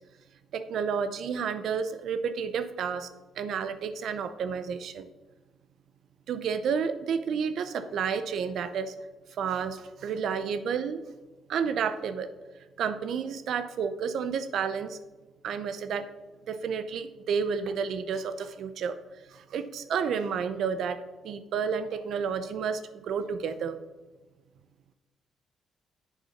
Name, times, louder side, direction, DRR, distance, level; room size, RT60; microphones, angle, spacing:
voice 1, 0.5-3.1 3.4-5.0 6.3-9.0 9.4-11.0 11.5-12.3 12.8-15.0 15.4-16.1 16.5-19.0 19.3-23.8, right 6 dB, 70° right, 11 dB, 0.6 m, -31 dB
7.4 x 6.7 x 5.8 m, 1.2 s
cardioid pair, 90°, 0 cm